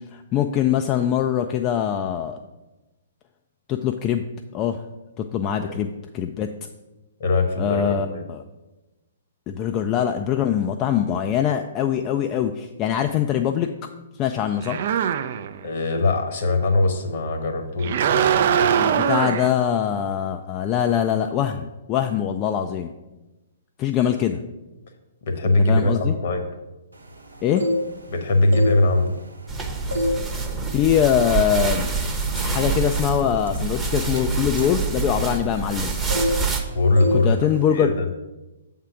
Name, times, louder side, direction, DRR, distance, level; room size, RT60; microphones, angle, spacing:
voice 1, 0.1-2.4 3.7-4.2 4.5-4.8 5.2-5.9 6.1-6.5 7.6-8.4 9.5-13.7 14.2-14.8 18.8-22.9 23.8-24.4 25.7-26.1 27.4-27.7 30.7-31.9 32.4-35.9 37.2-37.9, left 9 dB, 30° left, 6 dB, 0.3 m, -23 dB
voice 2, 7.2-8.3 15.6-18.7 25.3-26.4 28.1-29.1 36.7-37.4 37.7-38.1, left 2 dB, 55° left, 5 dB, 1.1 m, -21 dB
sound 1, 14.6-15.7 17.8-19.5, right 8 dB, 50° right, 0.4 m, -21 dB
sound 2, 27.3-28.1 28.4-29.5 29.9-30.2 30.6-30.9 31.5-31.6 32.0-35.8 36.1-36.7 37.0-37.2 37.5-37.8, left 1 dB, 90° right, 0.8 m, -27 dB
sound 3, 29.5-36.6, right 4 dB, 10° right, 0.8 m, -26 dB
7.3 x 3.6 x 5.8 m, 1.1 s
figure-of-eight pair, 120°, 0 cm